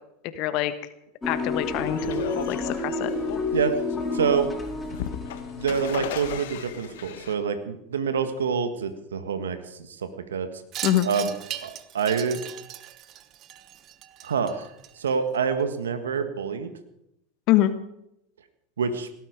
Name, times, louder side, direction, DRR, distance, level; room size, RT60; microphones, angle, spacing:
voice 1, 0.4-0.7 1.2-3.1 10.8-11.1 17.5-17.7, left 13 dB, 55° left, 11 dB, 1.2 m, -24 dB
sound 1, 1.2-6.4, left 3 dB, 10° left, 4.4 m, -30 dB
sound 2, 1.6-7.3, left 10 dB, 70° left, 1.4 m, -37 dB
voice 2, 4.1-4.5 5.6-10.5 11.0-11.3 11.6-12.4 14.2-14.7 15.0-16.7 18.8-19.1, right 6 dB, 80° right, 9 dB, 1.6 m, -26 dB
Wind chime, 10.7-15.4, right 11 dB, 45° right, 1.1 m, -38 dB
18.0 x 13.0 x 5.2 m, 0.80 s
hypercardioid pair, 90°, 0 cm